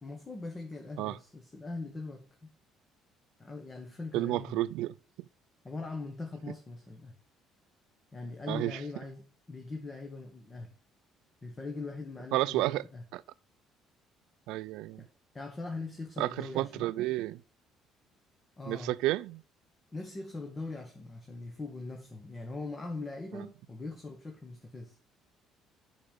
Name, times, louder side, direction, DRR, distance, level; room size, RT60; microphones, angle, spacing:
voice 1, 0.0-2.5 3.4-4.6 5.6-7.2 8.1-10.7 11.4-13.0 15.0-15.1 15.3-16.8 18.6-18.9 19.9-25.0, left 3 dB, 20° left, 1.3 m, -41 dB
voice 2, 4.1-4.9 8.5-8.8 12.3-12.8 13.1-13.2 14.5-15.1 16.2-17.4 18.7-19.4 23.3-23.5, right 16 dB, 85° right, 0.3 m, -31 dB
6.8 x 5.2 x 7.0 m
cardioid pair, 140°, 0 cm